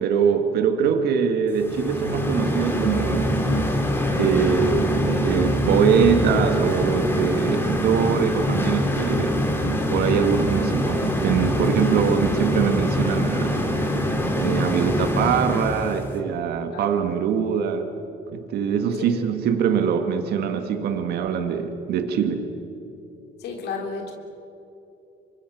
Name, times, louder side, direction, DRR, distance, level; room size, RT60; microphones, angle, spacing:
voice 1, 0.0-3.4 4.0-9.4 9.9-13.6 14.3-17.9 18.3-22.5, right 7 dB, 70° right, 7 dB, 1.8 m, -23 dB
sound 1, 1.6-16.1, equal, 15° left, 3.1 m, -24 dB
voice 2, 23.4-24.1, left 5 dB, 75° left, 2 dB, 3.4 m, -32 dB
27.0 x 23.5 x 6.2 m, 3.0 s
cardioid pair, 110°, 17 cm